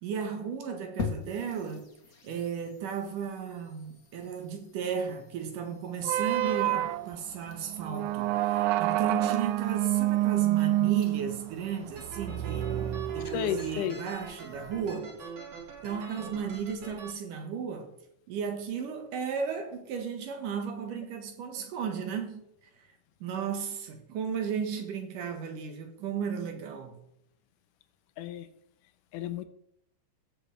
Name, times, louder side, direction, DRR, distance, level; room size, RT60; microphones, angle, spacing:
voice 1, 0.0-1.8 2.2-12.7 13.1-15.1 15.8-17.9 18.3-22.4 23.2-27.0, right 6 dB, 70° right, 2.8 m, -35 dB
sound 1, 1.0-15.0, left 5 dB, 45° left, 1.1 m, -46 dB
sound 2, 6.0-13.8, right 15 dB, 90° right, 1.7 m, -28 dB
sound 3, 12.0-17.1, right 5 dB, 40° right, 1.7 m, -44 dB
voice 2, 13.3-14.0 28.2-28.5 29.1-29.5, left 9 dB, 75° left, 2.1 m, -32 dB
15.5 x 6.5 x 3.3 m
omnidirectional pair, 4.1 m